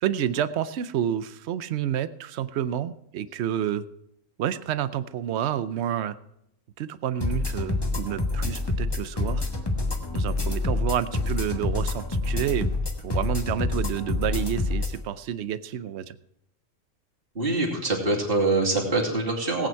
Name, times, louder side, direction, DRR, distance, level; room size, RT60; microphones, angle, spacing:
voice 1, 0.0-3.8 4.4-6.2 6.8-9.5 10.1-12.7 13.0-16.2, right 10 dB, 60° right, 14 dB, 0.9 m, -29 dB
sound 1, 7.2-15.0, left 2 dB, 20° left, 1.3 m, -27 dB
voice 2, 17.3-19.7, right 2 dB, 45° right, -1 dB, 2.8 m, -24 dB
17.5 x 8.9 x 4.6 m, 0.79 s
omnidirectional pair, 1.4 m